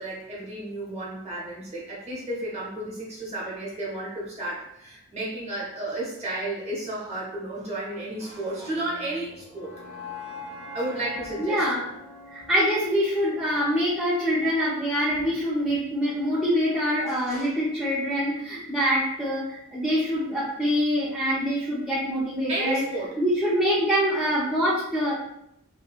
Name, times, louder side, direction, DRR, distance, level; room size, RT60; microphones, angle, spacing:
voice 1, 0.0-9.7 10.7-11.6 17.1-17.5 22.5-23.1, right 1 dB, 30° right, -5 dB, 0.9 m, -33 dB
sound 1, 8.3-14.4, left 3 dB, 55° right, 0.5 m, -43 dB
voice 2, 11.4-11.8 12.3-22.8 23.2-25.1, equal, ahead, -10 dB, 0.4 m, -25 dB
2.7 x 2.6 x 2.3 m, 0.78 s
head